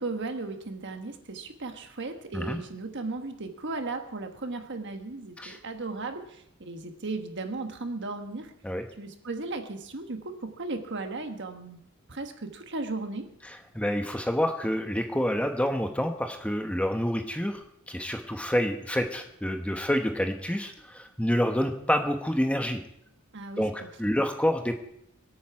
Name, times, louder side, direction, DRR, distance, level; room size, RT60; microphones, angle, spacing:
voice 1, 0.0-8.5 9.0-11.8 12.1-13.3 23.3-23.7, right 3 dB, 55° right, 6 dB, 1.4 m, -36 dB
voice 2, 13.4-22.8 23.6-24.8, equal, 5° left, 5 dB, 1.0 m, -28 dB
23.5 x 8.8 x 4.7 m, 0.73 s
head